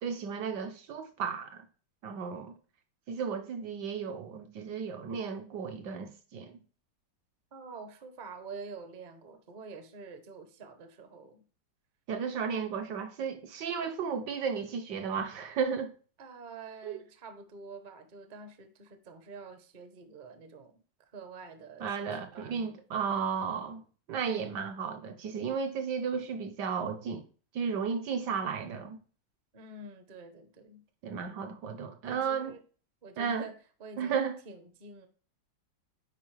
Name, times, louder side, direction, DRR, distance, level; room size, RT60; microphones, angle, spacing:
voice 1, 0.0-1.6 2.0-2.5 3.1-6.5 12.1-15.9 16.8-17.0 21.8-23.8 24.1-27.2 27.5-29.0 31.0-32.6 33.2-33.4 34.0-34.4, right 6 dB, 70° right, 1.1 m, -34 dB
voice 2, 7.5-11.4 16.2-22.1 22.3-22.8 24.2-24.7 29.5-30.8 32.0-32.6 33.0-34.2 34.4-35.1, right 4 dB, 50° right, 0.5 m, -47 dB
8.2 x 4.8 x 3.2 m
omnidirectional pair, 2.2 m